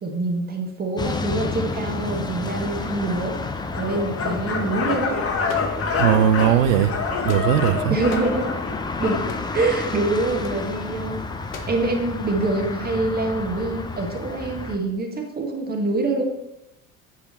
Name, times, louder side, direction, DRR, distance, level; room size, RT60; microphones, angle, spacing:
voice 1, 0.0-3.4 3.8-5.2 7.9-8.5 9.0-9.2 9.5-11.3 11.7-16.3, right 2 dB, 20° right, 1.4 m, -25 dB
sound 1, 1.0-14.8, left 3 dB, 10° left, 0.6 m, -31 dB
sound 2, 3.7-9.8, left 4 dB, 35° left, 1.4 m, -27 dB
sound 3, 5.4-6.2 7.0-7.7 8.1-8.4 9.3-9.6 10.4-10.6 11.5-11.8, left 4 dB, 75° left, 1.0 m, -38 dB
voice 2, 6.0-6.9 7.2-8.0, right 10 dB, 65° right, 0.6 m, -18 dB
8.1 x 4.8 x 4.1 m
figure-of-eight pair, 65°, 41 cm